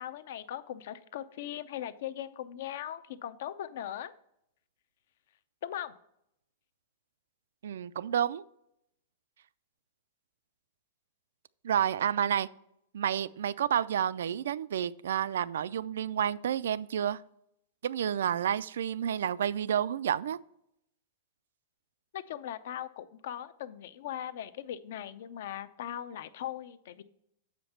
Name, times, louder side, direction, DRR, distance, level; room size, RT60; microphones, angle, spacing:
voice 1, 0.0-4.1 5.6-6.0 22.1-27.0, left 11 dB, 65° left, 14 dB, 0.5 m, -39 dB
voice 2, 7.6-8.4 11.6-12.5 12.9-17.2 17.8-20.4, right 9 dB, 90° right, 17 dB, 0.3 m, -30 dB
7.1 x 5.1 x 5.7 m, 0.78 s
supercardioid pair, 160°, 0 cm